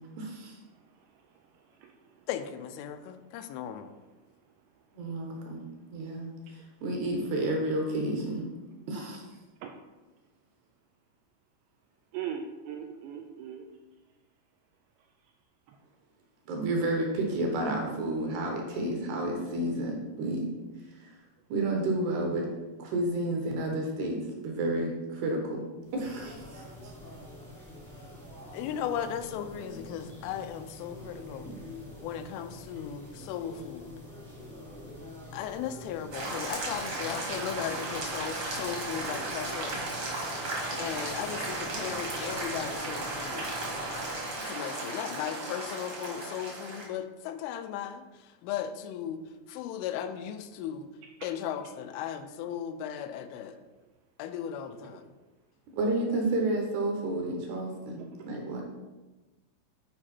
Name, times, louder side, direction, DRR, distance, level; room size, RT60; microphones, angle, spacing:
voice 1, 0.2-0.6 4.9-5.6 5.9-8.5 8.9-9.2 16.5-20.5 20.9-21.2 21.5-22.5 22.8-25.6 25.9-26.9 55.7-58.6, right 1 dB, 70° right, 1 dB, 2.7 m, -31 dB
voice 2, 1.7-2.2 9.6-9.7 12.1-13.7 15.7-15.8 28.1-28.3 35.3-35.4 58.0-58.3, right 8 dB, 90° right, 3 dB, 2.5 m, -40 dB
voice 3, 2.3-3.9 28.5-31.5 32.0-33.9 35.3-40.0 40.8-43.5 44.5-49.2 49.5-50.9 51.2-53.6 54.2-55.1, left 9 dB, 85° left, 9 dB, 3.0 m, -36 dB
sound 1, 25.8-44.4, left 1 dB, ahead, 0.8 m, -47 dB
sound 2, 36.1-46.8, right 2 dB, 55° right, 1.5 m, -35 dB
9.8 x 4.9 x 4.3 m, 1.2 s
omnidirectional pair, 5.6 m